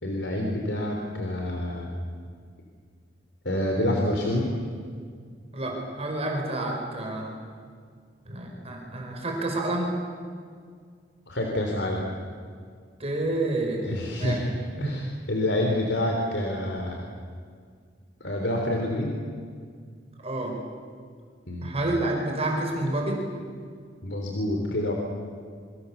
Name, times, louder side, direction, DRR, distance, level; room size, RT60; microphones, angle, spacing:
voice 1, 0.0-1.9 3.4-4.5 11.3-12.0 13.8-14.5 14.8-17.0 18.2-19.1 21.5-21.8 24.0-24.9, left 1 dB, 70° left, 1 dB, 3.4 m, -27 dB
voice 2, 5.5-7.3 8.3-9.9 13.0-13.9 14.2-14.4 14.8-15.0 20.2-20.6 21.6-23.3, right 2 dB, 35° right, 1 dB, 4.9 m, -29 dB
27.0 x 25.0 x 7.2 m, 2.1 s
head